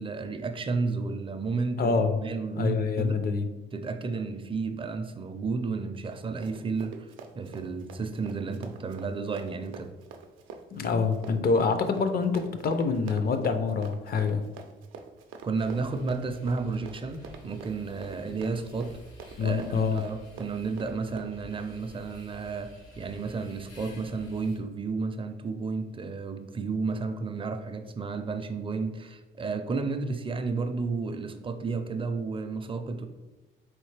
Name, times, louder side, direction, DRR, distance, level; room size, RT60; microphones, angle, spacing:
voice 1, 0.0-3.2 3.7-9.9 15.4-18.9 19.4-22.7 23.0-33.1, right 4 dB, 25° right, 7 dB, 0.4 m, -32 dB
voice 2, 1.8-2.2 2.6-3.5 10.7-14.4 19.4-20.0, left 4 dB, 50° left, 8 dB, 0.5 m, -26 dB
Run, 6.1-21.4, right 5 dB, 90° right, 0.4 m, -46 dB
sound 1, 15.6-24.6, left 1 dB, 80° left, 1.3 m, -51 dB
3.8 x 3.2 x 3.2 m, 1.1 s
cardioid pair, 90°, 20 cm